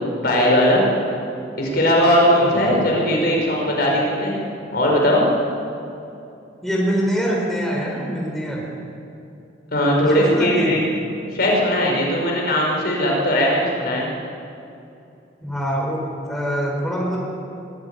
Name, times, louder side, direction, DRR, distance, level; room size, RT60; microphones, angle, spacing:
voice 1, 0.2-0.8 1.6-4.4 4.7-5.2 9.7-10.8 11.3-14.1, equal, 55° left, -2 dB, 5.4 m, -18 dB
voice 2, 2.4-2.8 6.6-8.6 10.0-10.8 15.4-17.2, equal, ahead, -3 dB, 4.0 m, -24 dB
22.5 x 14.5 x 9.1 m, 2.7 s
head